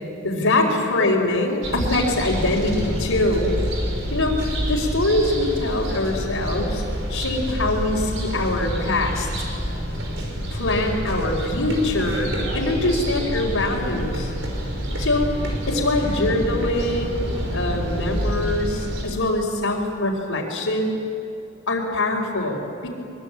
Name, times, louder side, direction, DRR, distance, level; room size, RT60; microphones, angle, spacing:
voice 1, 0.2-3.6 4.1-6.8 7.1-9.3 10.5-14.3 15.0-15.3 15.7-21.0 21.7-22.9, left 2 dB, 90° left, -5 dB, 4.2 m, -23 dB
sound 1, 1.6-19.0, equal, 70° right, 5.4 m, -27 dB
23.5 x 22.5 x 8.8 m, 2.8 s
head